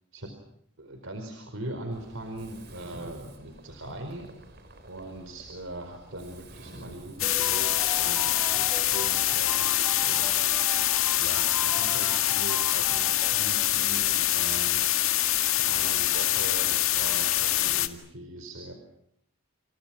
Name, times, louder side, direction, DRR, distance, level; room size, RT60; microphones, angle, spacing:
voice 1, 0.8-4.3 4.9-10.8 11.2-15.0 15.6-18.7, right 1 dB, 75° right, 6 dB, 4.6 m, -40 dB
Mechanisms, 1.9-9.5, right 1 dB, 50° right, 4.8 m, -49 dB
sound 1, 7.2-17.9, left 13 dB, 80° left, 1.9 m, -25 dB
sound 2, 7.2-14.0, right 1 dB, 10° right, 1.3 m, -41 dB
29.5 x 29.5 x 6.0 m, 0.74 s
head